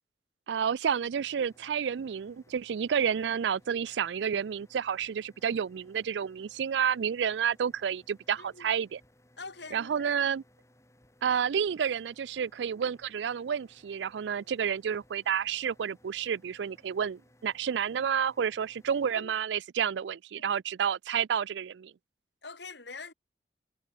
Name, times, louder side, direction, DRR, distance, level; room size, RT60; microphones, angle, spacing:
voice 1, 0.5-9.0 9.7-10.4 11.2-21.9, right 7 dB, 85° right, 0.4 m, -30 dB
sound 1, 1.1-19.1, left 1 dB, 15° left, 6.1 m, -63 dB
voice 2, 8.4-8.7 9.4-10.3 19.1-19.3 20.4-20.5 22.4-23.1, left 4 dB, 80° left, 5.6 m, -45 dB
head